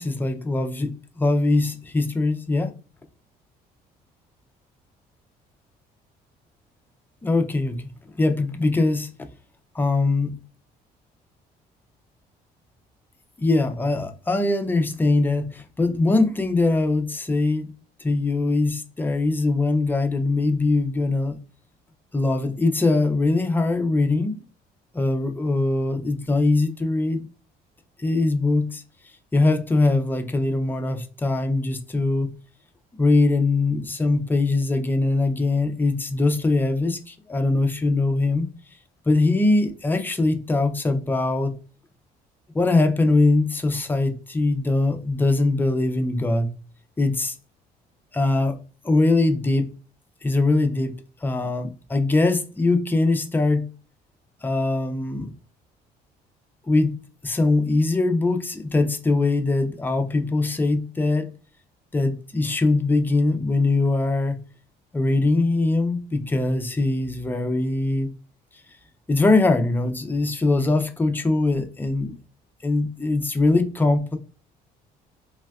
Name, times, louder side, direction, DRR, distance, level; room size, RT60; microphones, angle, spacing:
voice 1, 0.0-2.7 7.2-7.9 8.2-9.1 9.7-10.4 13.4-17.7 18.0-21.4 22.1-24.4 24.9-27.3 28.0-28.8 29.3-32.4 33.0-38.5 39.1-41.6 42.5-46.5 47.0-47.4 48.1-49.7 50.2-50.9 51.2-53.7 54.4-55.3 56.6-61.3 61.9-64.4 64.9-68.1 69.1-72.1 72.6-74.2, left 2 dB, 10° left, 0.4 m, -22 dB
3.4 x 2.1 x 2.2 m
cardioid pair, 110°, 17 cm